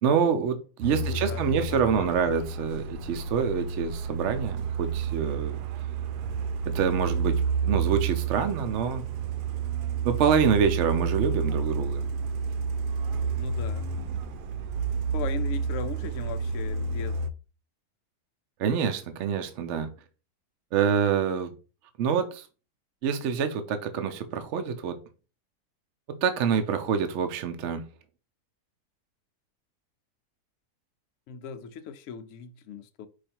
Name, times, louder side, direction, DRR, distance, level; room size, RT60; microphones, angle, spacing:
voice 1, 0.0-5.6 6.7-9.0 10.0-12.1 18.6-19.9 20.7-21.5 22.0-22.5 23.0-25.0 26.1-27.8, right 7 dB, 65° right, 0.7 m, -26 dB
Truck, 0.8-17.3, right 5 dB, 80° right, 1.1 m, -30 dB
voice 2, 0.9-2.3 13.4-13.9 15.1-17.2 31.3-33.1, left 7 dB, 70° left, 0.8 m, -38 dB
4.7 x 2.5 x 4.3 m
omnidirectional pair, 1.7 m